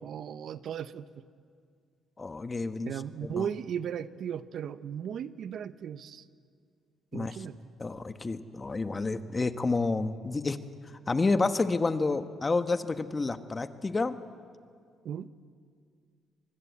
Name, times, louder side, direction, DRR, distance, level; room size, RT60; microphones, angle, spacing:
voice 1, 0.0-1.2 2.8-6.2 7.1-7.6 15.0-15.3, right 8 dB, 65° right, 14 dB, 0.8 m, -36 dB
voice 2, 2.2-2.9 3.2-3.5 7.1-7.4 7.8-10.6 11.1-14.2, left 3 dB, 25° left, 10 dB, 1.2 m, -29 dB
24.5 x 20.5 x 8.4 m, 2.1 s
cardioid pair, 90°, 0 cm